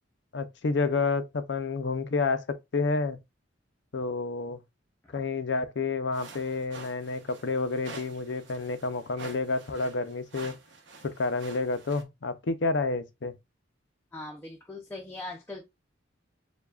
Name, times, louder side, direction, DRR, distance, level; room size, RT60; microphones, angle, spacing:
voice 1, 0.3-3.2 3.9-4.6 5.1-10.6 11.0-13.3, left 3 dB, 65° left, 0.6 m, -29 dB
sound 1, 6.1-12.0, right 3 dB, 75° right, 0.9 m, -48 dB
voice 2, 14.1-15.6, left 2 dB, 10° left, 0.6 m, -40 dB
6.9 x 2.3 x 2.3 m
head